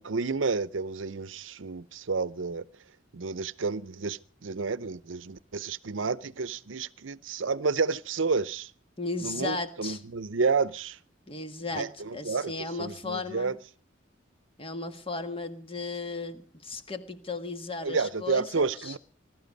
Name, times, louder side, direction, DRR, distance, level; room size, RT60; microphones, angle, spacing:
voice 1, 0.0-2.6 3.1-8.7 9.2-11.0 11.7-12.5 12.8-13.6 17.8-19.0, right 4 dB, 80° right, 0.7 m, -30 dB
voice 2, 9.0-10.0 11.3-13.6 14.6-18.9, left 3 dB, 30° left, 1.6 m, -36 dB
20.5 x 12.5 x 5.3 m
head